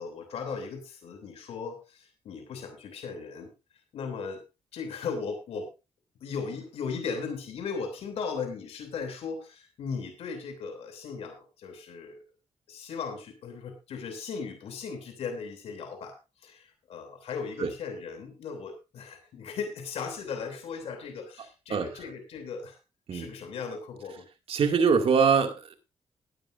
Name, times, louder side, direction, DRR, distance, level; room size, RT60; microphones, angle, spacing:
voice 1, 0.0-3.5 3.9-4.4 4.7-5.7 6.2-12.2 12.7-22.8 23.1-24.3, left 5 dB, 85° left, 5 dB, 3.0 m, -37 dB
voice 2, 21.7-22.1 23.1-23.3 24.5-25.7, right 6 dB, 70° right, 5 dB, 2.3 m, -24 dB
18.0 x 10.5 x 2.6 m, 0.26 s
cardioid pair, 65°, 10 cm